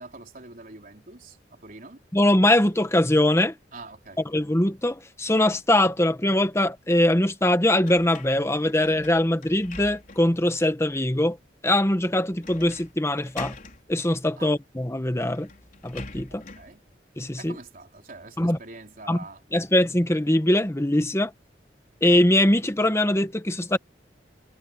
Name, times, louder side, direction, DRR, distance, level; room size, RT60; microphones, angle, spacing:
voice 1, 0.0-2.0 3.7-4.2 14.4-14.6 16.3-16.8 17.4-19.4, right 3 dB, 50° right, 3.9 m, -44 dB
voice 2, 2.1-3.5 4.3-11.4 11.6-13.5 13.9-15.5 15.8-16.4 17.2-17.6 18.4-18.6 19.1-19.2 19.5-21.3 22.0-23.8, left 1 dB, 15° left, 1.2 m, -22 dB
sound 1, 7.8-10.4 10.9-11.0 12.4-12.9 13.2-13.8 14.8-14.9 15.2-16.7, left 3 dB, 50° left, 4.4 m, -43 dB
head